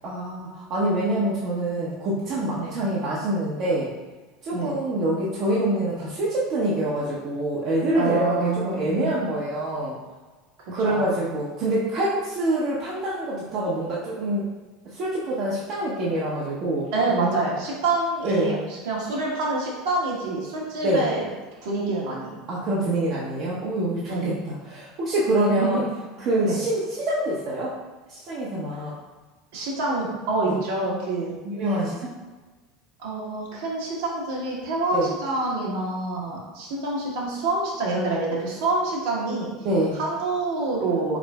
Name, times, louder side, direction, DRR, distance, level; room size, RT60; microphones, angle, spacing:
voice 1, 0.0-3.9 4.4-10.0 10.7-14.5 14.9-17.4 18.2-18.5 20.8-21.0 22.5-25.8 26.2-27.7 28.1-28.9 30.5-30.6 31.4-32.1 34.9-35.1 39.6-40.0, right 1 dB, 45° right, -7 dB, 0.9 m, -25 dB
voice 2, 7.9-9.2 10.8-11.3 16.9-21.2 21.6-22.4 24.1-24.4 25.4-25.8 26.4-26.6 29.5-31.3 33.0-39.5 39.9-41.2, right 2 dB, 60° right, -4 dB, 1.3 m, -27 dB
4.8 x 4.3 x 2.3 m, 1.3 s
figure-of-eight pair, 75°, 0 cm